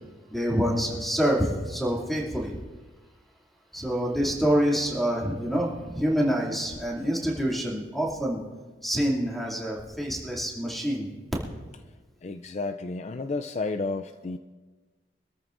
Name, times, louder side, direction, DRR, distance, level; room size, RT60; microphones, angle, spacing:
voice 1, 0.3-2.6 3.7-8.4 8.8-11.1, equal, ahead, -4 dB, 2.6 m, -26 dB
voice 2, 12.2-14.4, left 3 dB, 40° left, 9 dB, 0.4 m, -31 dB
25.0 x 13.5 x 2.6 m, 1.3 s
head